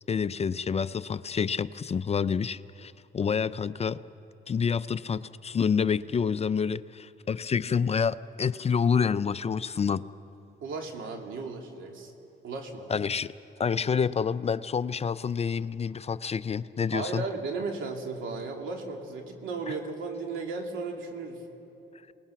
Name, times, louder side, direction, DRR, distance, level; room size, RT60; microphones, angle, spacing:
voice 1, 0.1-4.0 4.5-10.0 12.9-13.3 13.6-17.2, left 6 dB, 30° left, 15 dB, 0.4 m, -28 dB
voice 2, 10.6-12.1 12.4-12.9 16.9-21.4, right 4 dB, 80° right, 2 dB, 2.8 m, -35 dB
27.5 x 20.0 x 5.9 m, 3.0 s
cardioid pair, 90°, 20 cm